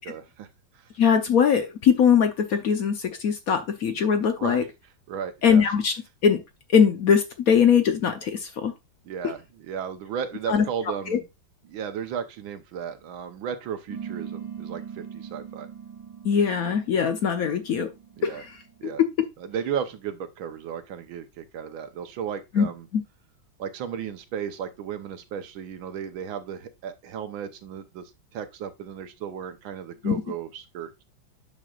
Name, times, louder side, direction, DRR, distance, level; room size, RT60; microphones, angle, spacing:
voice 1, 0.1-0.5 0.8-0.9 4.4-4.7 5.1-5.7 9.1-11.2 11.7-15.7 18.2-18.4 18.8-19.0 19.4-22.9 23.6-31.0, right 8 dB, 90° right, 1.7 m, -34 dB
voice 2, 1.0-4.6 5.4-5.9 6.2-6.4 6.7-8.7 10.5-10.6 11.1-11.2 16.2-17.9 18.2-18.5 19.0-19.1 22.5-22.7 22.9-23.0 30.0-30.2, left 7 dB, 60° left, 1.0 m, -21 dB
sound 1, 13.9-18.8, right 7 dB, 20° right, 0.6 m, -40 dB
8.9 x 6.3 x 2.4 m
omnidirectional pair, 2.1 m